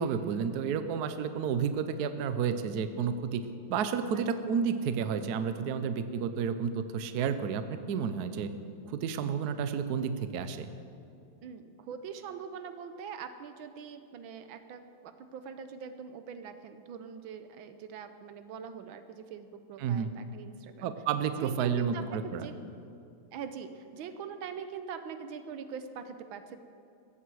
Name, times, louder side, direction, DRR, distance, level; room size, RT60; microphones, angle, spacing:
voice 1, 0.0-8.5 8.9-10.7 19.8-20.1 20.8-22.5, right 6 dB, 60° right, 10 dB, 1.1 m, -31 dB
voice 2, 11.4-20.9 21.4-22.5 23.3-26.6, right 6 dB, 80° right, 9 dB, 1.6 m, -43 dB
16.0 x 14.0 x 4.8 m, 2.6 s
omnidirectional pair, 2.2 m